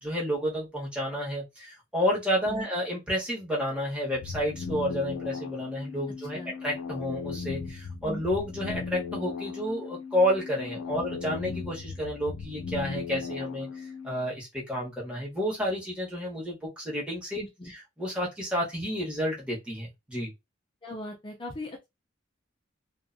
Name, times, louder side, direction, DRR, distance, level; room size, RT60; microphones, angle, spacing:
voice 1, 0.0-6.4 6.6-13.7 14.0-17.4 17.7-20.3, equal, 5° right, 1.1 m, -30 dB
sound 1, 4.1-14.1, left 5 dB, 85° left, 0.4 m, -37 dB
voice 2, 17.4-17.7 20.8-21.9, left 1 dB, 25° left, 0.5 m, -39 dB
2.6 x 2.2 x 2.6 m
head